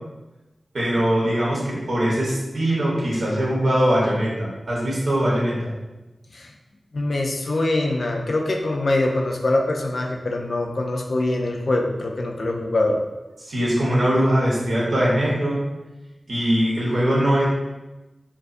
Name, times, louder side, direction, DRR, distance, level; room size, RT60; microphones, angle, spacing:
voice 1, 0.7-5.7 13.4-15.6 16.3-17.5, equal, 75° right, -6 dB, 0.8 m, -21 dB
voice 2, 6.9-13.0, left 2 dB, 70° left, 1 dB, 0.3 m, -23 dB
2.6 x 2.3 x 2.4 m, 1.1 s
cardioid pair, 40°, 0 cm